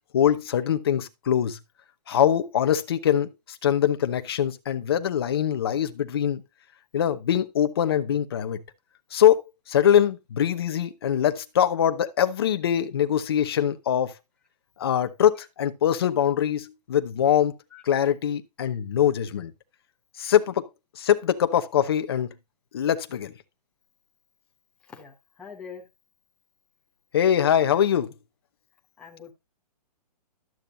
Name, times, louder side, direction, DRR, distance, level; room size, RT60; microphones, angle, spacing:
voice 1, 0.1-1.6 2.1-6.4 6.9-8.6 9.1-14.1 14.8-17.5 17.8-19.5 20.2-20.6 21.0-22.3 22.7-23.3 27.1-28.1, left 9 dB, 35° left, 0.8 m, -23 dB
voice 2, 24.9-25.8 29.0-29.3, left 6 dB, 5° left, 0.8 m, -43 dB
12.0 x 7.8 x 2.7 m
hypercardioid pair, 175°, 21 cm